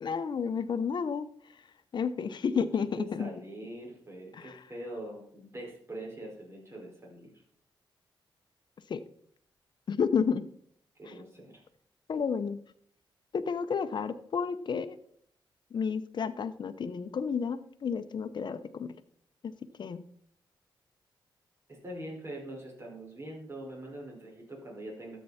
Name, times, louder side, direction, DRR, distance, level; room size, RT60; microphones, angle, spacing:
voice 1, 0.0-1.3 1.9-3.3 4.3-4.6 8.9-9.0 9.9-10.4 12.1-12.6 13.3-15.0 15.7-18.9 19.4-19.5 19.8-20.0, left 6 dB, 60° left, 11 dB, 0.9 m, -31 dB
voice 2, 3.0-7.3 11.0-11.6 21.7-25.2, right 1 dB, 30° right, -1 dB, 5.3 m, -43 dB
13.0 x 8.5 x 4.3 m, 0.63 s
cardioid pair, 85°, 9 cm